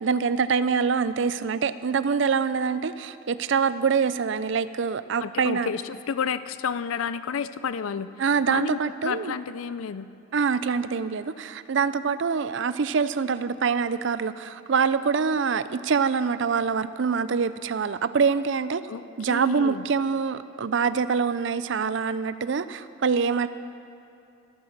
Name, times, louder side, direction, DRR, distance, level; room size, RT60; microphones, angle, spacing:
voice 1, 0.0-5.7 8.2-9.3 10.3-18.8 19.2-23.5, right 5 dB, 60° right, 13 dB, 0.4 m, -25 dB
voice 2, 5.2-8.1 8.5-10.1 18.9-19.0 19.3-19.8, left 6 dB, 80° left, 14 dB, 0.5 m, -31 dB
13.5 x 13.5 x 6.6 m, 2.7 s
head